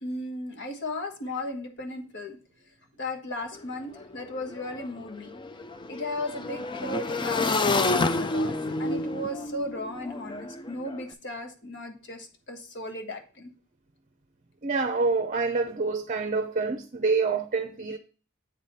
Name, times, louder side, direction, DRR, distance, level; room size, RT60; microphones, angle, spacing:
voice 1, 0.0-2.4 3.0-5.3 5.9-13.5, left 1 dB, 55° left, 1.4 m, -36 dB
Motorcycle / Engine, 3.5-3.6 3.9-11.0, left 3 dB, 20° left, 0.4 m, -29 dB
voice 2, 14.6-18.0, right 4 dB, 35° right, 0.6 m, -27 dB
8.0 x 4.9 x 4.1 m
head